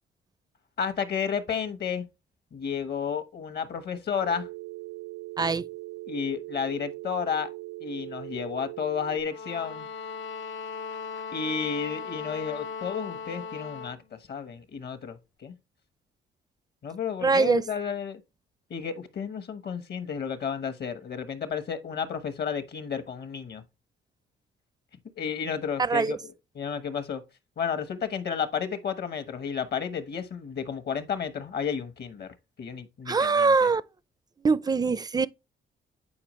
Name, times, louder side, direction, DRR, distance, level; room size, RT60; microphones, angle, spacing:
voice 1, 0.8-2.1 2.5-4.5 6.1-7.5 7.8-9.9 11.3-15.5 16.8-18.2 18.7-23.6 25.2-27.2 27.6-33.7, left 7 dB, 55° left, 1.1 m, -32 dB
Telephone, 4.2-9.2, right 20 dB, 80° right, 0.6 m, -40 dB
voice 2, 5.4-5.7 17.2-17.6 25.8-26.1 33.1-33.8 34.4-35.3, right 4 dB, 20° right, 0.4 m, -23 dB
sound 1, 9.3-14.0, left 5 dB, 70° left, 0.6 m, -38 dB
8.5 x 4.7 x 3.1 m
cardioid pair, 90°, 20 cm